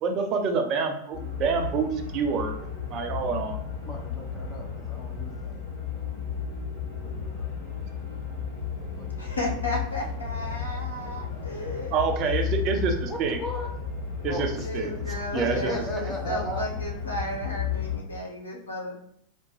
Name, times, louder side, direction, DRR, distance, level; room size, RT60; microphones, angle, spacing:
voice 1, 0.0-2.5 2.9-3.6 11.9-13.4 14.2-14.5 14.7-14.9 15.3-15.7 16.0-16.1, right 5 dB, 35° right, 4 dB, 0.5 m, -27 dB
sound 1, 1.1-18.0, left 7 dB, 45° left, 1.4 m, -33 dB
voice 2, 3.8-5.6 6.9-7.5 8.8-9.4 9.7-9.8 13.1-13.7 14.3-16.7, left 1 dB, 20° left, 0 dB, 0.9 m, -37 dB
voice 3, 9.2-11.9 14.6-19.0, left 1 dB, 75° left, -2 dB, 1.0 m, -34 dB
4.5 x 2.1 x 3.1 m, 0.69 s
figure-of-eight pair, 90°, 0 cm